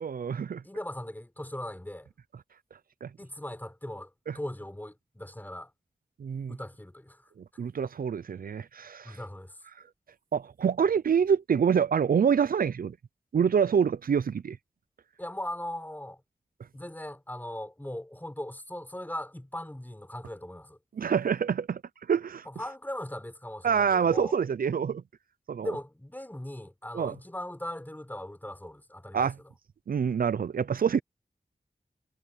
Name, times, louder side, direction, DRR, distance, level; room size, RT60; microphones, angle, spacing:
voice 1, 0.0-0.6 3.0-3.1 6.2-6.6 7.6-9.2 10.3-13.0 13.3-14.6 21.0-21.8 22.1-22.5 23.6-25.0 25.5-25.7 26.9-27.1 29.1-29.3 29.9-31.0, right 7 dB, 75° right, 0.5 m, -26 dB
voice 2, 0.6-2.1 3.2-5.7 6.5-7.3 9.0-9.6 15.2-16.2 16.7-20.8 22.5-24.4 25.6-29.3, left 1 dB, 10° left, 4.0 m, -39 dB
wide cardioid pair, 95°, 15 cm